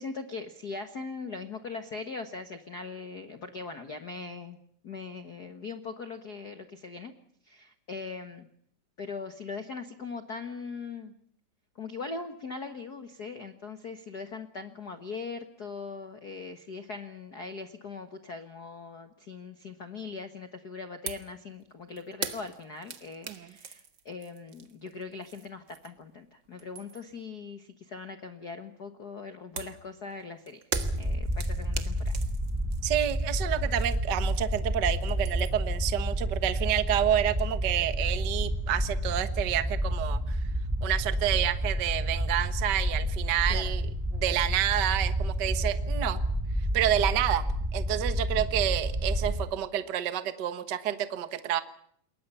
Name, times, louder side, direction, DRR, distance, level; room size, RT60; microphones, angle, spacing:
voice 1, 0.0-4.6 4.8-7.1 7.4-8.5 9.0-11.1 11.8-30.7 31.0-32.1 43.5-43.6 48.3-48.5, left 4 dB, 80° left, 8 dB, 0.8 m, -40 dB
sound 1, 21.1-21.3 21.6-26.1 26.4-27.2 29.6-34.7 34.9-35.7, right 6 dB, 45° right, 1.5 m, -41 dB
sound 2, 30.7-49.5, equal, 10° right, 0.8 m, -30 dB
voice 2, 32.8-40.4 40.8-43.8 44.1-46.2 46.7-51.6, right 11 dB, 75° right, 11 dB, 0.9 m, -29 dB
28.5 x 22.0 x 5.6 m, 0.63 s
omnidirectional pair, 4.2 m